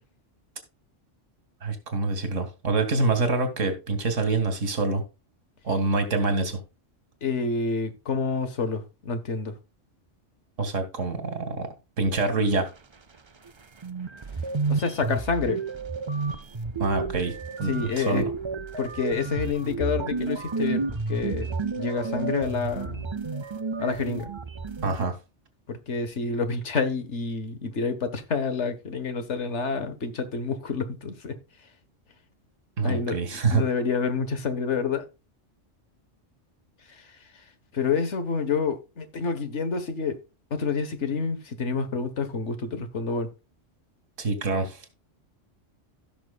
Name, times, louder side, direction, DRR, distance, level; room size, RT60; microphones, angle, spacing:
voice 1, 1.6-5.0 5.6-6.6 10.6-12.7 16.8-18.3 24.8-25.1 32.8-33.6 44.2-44.8, right 3 dB, 85° right, 2.1 m, -26 dB
voice 2, 7.2-9.5 14.7-15.6 17.7-18.2 18.8-23.1 23.8-24.3 25.7-31.4 32.8-35.1 36.9-37.2 37.7-40.2 40.5-43.3, left 5 dB, 65° left, 1.6 m, -28 dB
sound 1, 13.5-13.6 13.8-25.1, right 4 dB, 35° right, 0.5 m, -31 dB
16.0 x 6.1 x 2.3 m
omnidirectional pair, 1.3 m